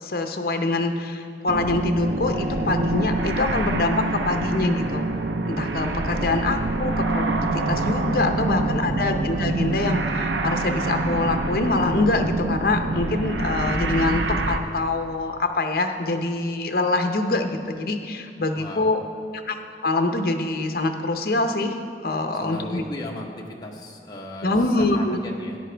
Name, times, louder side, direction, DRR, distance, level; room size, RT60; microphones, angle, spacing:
voice 1, 0.0-5.1 5.5-19.0 19.5-19.6 19.8-21.8 22.0-22.8 24.4-25.2, left 2 dB, 55° left, 6 dB, 0.7 m, -24 dB
sound 1, 1.5-14.6, right 2 dB, 75° right, 0.6 m, -25 dB
voice 2, 8.0-9.0 18.5-18.9 22.3-24.5 24.8-25.6, left 1 dB, 20° left, -1 dB, 1.0 m, -37 dB
14.0 x 10.0 x 3.4 m, 2.4 s
head